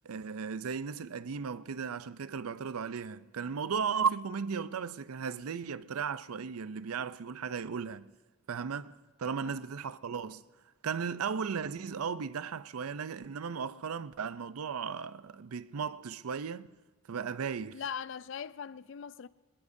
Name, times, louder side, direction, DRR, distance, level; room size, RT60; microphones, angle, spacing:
voice 1, 0.0-8.1 8.5-10.4 10.8-16.7 17.1-17.8, right 6 dB, 90° right, 0.5 m, -36 dB
voice 2, 17.7-19.3, left 7 dB, 60° left, 0.4 m, -40 dB
21.5 x 20.5 x 2.7 m
head